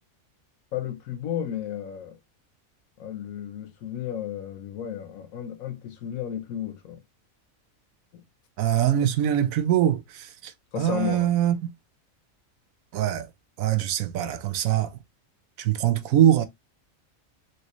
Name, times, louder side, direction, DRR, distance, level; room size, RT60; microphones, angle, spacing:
voice 1, 0.7-2.2 3.0-7.0 8.1-8.2 10.7-11.3, left 10 dB, 90° left, 1.2 m, -33 dB
voice 2, 8.6-11.5 12.9-13.3 13.6-15.0 15.6-16.5, right 11 dB, 85° right, 1.0 m, -23 dB
3.0 x 3.0 x 2.9 m
omnidirectional pair, 1.4 m